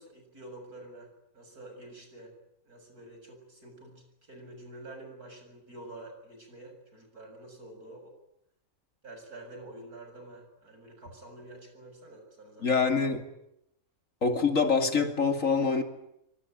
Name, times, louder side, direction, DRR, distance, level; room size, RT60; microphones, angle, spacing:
voice 1, 0.0-2.3 2.7-8.1 9.0-12.8, right 2 dB, 85° right, 7.9 m, -48 dB
voice 2, 12.6-13.2 14.2-15.8, left 5 dB, 60° left, 3.0 m, -25 dB
24.5 x 24.5 x 9.2 m
omnidirectional pair, 1.5 m